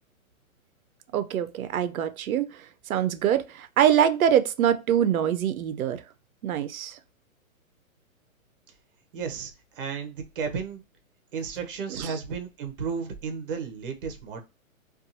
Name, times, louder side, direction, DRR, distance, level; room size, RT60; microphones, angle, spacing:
voice 1, 1.1-2.5 2.9-6.0 6.4-7.0 12.0-12.1, right 9 dB, 90° right, 0.5 m, -24 dB
voice 2, 9.1-10.8 11.3-14.4, right 6 dB, 40° right, 0.7 m, -33 dB
2.7 x 2.3 x 2.5 m
hypercardioid pair, 160°, 41 cm